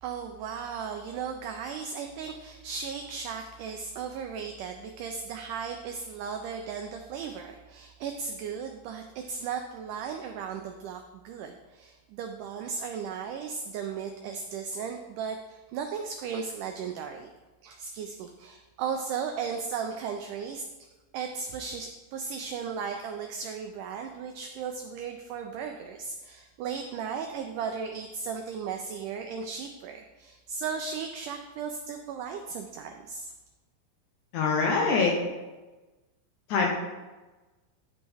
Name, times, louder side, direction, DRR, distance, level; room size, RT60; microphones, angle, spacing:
voice 1, 0.0-17.3 17.6-20.7 21.1-33.3, right 6 dB, 90° right, 4 dB, 1.8 m, -36 dB
voice 2, 34.3-35.2 36.5-36.7, left 4 dB, 70° left, 0 dB, 2.0 m, -24 dB
11.0 x 5.3 x 3.4 m, 1.2 s
omnidirectional pair, 4.3 m